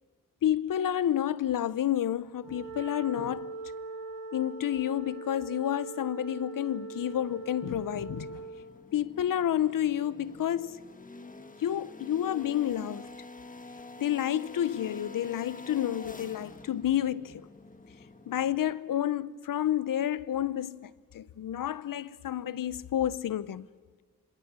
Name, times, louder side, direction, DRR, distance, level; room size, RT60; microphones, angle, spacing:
voice 1, 0.4-3.5 4.3-8.4 8.9-10.8 11.6-13.1 14.0-17.4 18.3-23.7, left 11 dB, 90° left, 0.8 m, -30 dB
Wind instrument woodwind instrument, 2.3-8.6, right 3 dB, 85° right, 5.4 m, -41 dB
sound 1, 7.0-18.8, left 3 dB, 25° left, 1.6 m, -48 dB
27.0 x 25.5 x 7.5 m
wide cardioid pair, 120°, 32 cm